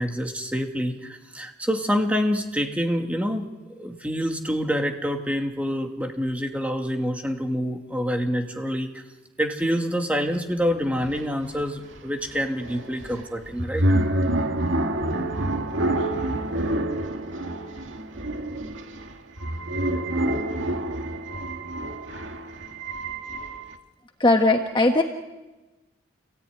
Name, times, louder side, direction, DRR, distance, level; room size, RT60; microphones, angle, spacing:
voice 1, 0.0-3.5 3.8-8.9 9.4-13.9, equal, 5° right, 3 dB, 2.4 m, -26 dB
sound 1, 10.7-10.8 11.0-23.8, right 1 dB, 80° right, 2.3 m, -27 dB
voice 2, 24.2-25.0, left 2 dB, 25° left, 4 dB, 1.3 m, -18 dB
28.5 x 18.0 x 9.6 m, 1.1 s
head